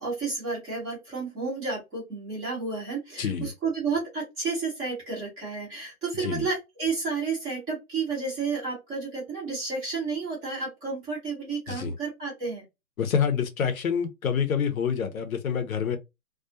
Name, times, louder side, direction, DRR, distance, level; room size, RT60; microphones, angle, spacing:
voice 1, 0.0-12.6, right 4 dB, 10° right, 0.6 m, -31 dB
voice 2, 3.2-3.5 6.2-6.5 11.7-11.9 13.0-16.0, left 7 dB, 70° left, 0.8 m, -27 dB
2.3 x 2.3 x 2.6 m
hypercardioid pair, 135°, 44 cm